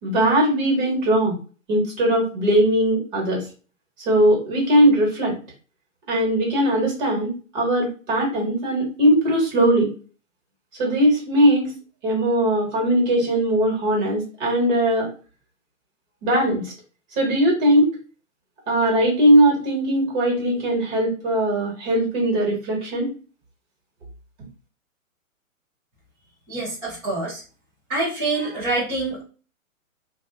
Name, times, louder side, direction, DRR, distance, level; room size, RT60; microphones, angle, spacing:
voice 1, 0.0-1.4 1.7-3.4 4.0-5.3 6.1-9.9 10.8-11.7 12.0-15.1 16.2-16.7 17.2-17.9 18.7-23.1, right 1 dB, 35° right, -1 dB, 1.4 m, -19 dB
voice 2, 26.5-27.4 27.9-29.2, right 2 dB, 5° right, -12 dB, 0.5 m, -26 dB
2.4 x 2.3 x 2.2 m, 0.36 s
hypercardioid pair, 140°, 41 cm